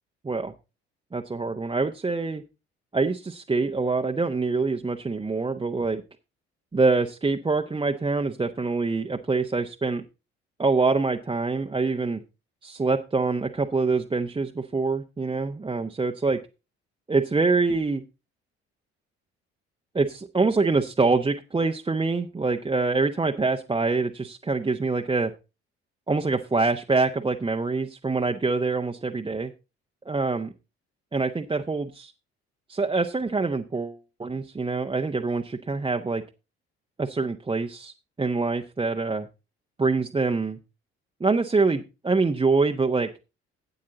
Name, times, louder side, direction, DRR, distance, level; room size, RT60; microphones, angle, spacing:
voice 1, 1.1-2.4 2.9-6.0 6.7-10.0 10.6-12.2 12.6-16.4 17.1-18.0 19.9-25.3 26.1-29.5 30.1-30.5 31.1-32.1 32.7-36.2 37.0-37.9 38.2-39.3 39.8-40.6 41.2-43.1, right 3 dB, 15° right, 3 dB, 0.8 m, -25 dB
12.0 x 8.6 x 3.9 m, 0.28 s
figure-of-eight pair, 50°, 33 cm